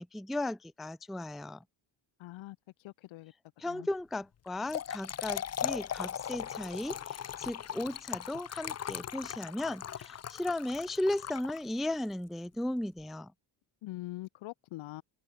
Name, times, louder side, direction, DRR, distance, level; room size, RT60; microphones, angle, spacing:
voice 1, 0.0-1.6 3.6-13.3, left 1 dB, ahead, 0.4 m, -36 dB
voice 2, 2.2-2.6 2.8-3.3 3.6-3.9 13.8-15.0, left 18 dB, 90° left, 5.8 m, -43 dB
Trickle dribble / Fill (with liquid), 4.5-11.9, left 9 dB, 35° left, 1.2 m, -38 dB
cardioid pair, 155°, 45 cm